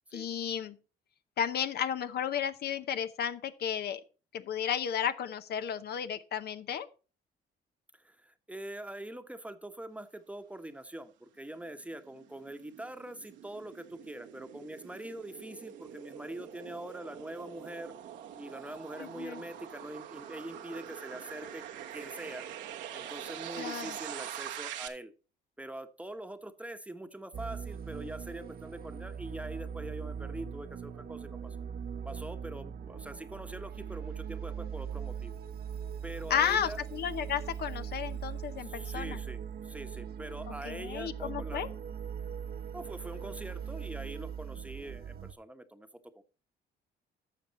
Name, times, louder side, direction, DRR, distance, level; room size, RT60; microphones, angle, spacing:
voice 1, 0.1-0.8 1.4-4.0 4.3-6.9 19.0-19.4 23.6-24.0 36.3-39.2 40.5-41.7, left 8 dB, 60° left, 11 dB, 0.7 m, -33 dB
voice 2, 7.9-17.9 18.4-21.6 21.9-22.5 22.9-25.1 25.6-31.6 32.0-35.3 36.0-36.8 38.6-41.7 42.7-45.9 46.1-46.2, right 1 dB, 5° right, 8 dB, 1.0 m, -43 dB
sound 1, 11.7-24.9, right 10 dB, 85° right, 1.2 m, -44 dB
sound 2, 27.3-45.3, right 7 dB, 55° right, 0.9 m, -40 dB
12.0 x 6.8 x 4.1 m, 0.35 s
cardioid pair, 80°, 18 cm